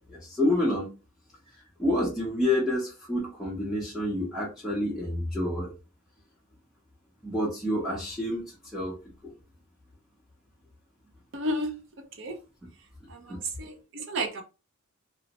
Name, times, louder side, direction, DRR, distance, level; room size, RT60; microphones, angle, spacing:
voice 1, 0.1-0.9 1.8-5.7 7.2-8.9 9.2-9.3 13.3-13.4, left 1 dB, ahead, 0.6 m, -28 dB
voice 2, 11.3-11.7 12.1-12.4 13.1-14.4, right 1 dB, 55° right, 0.6 m, -32 dB
2.9 x 2.1 x 2.8 m
head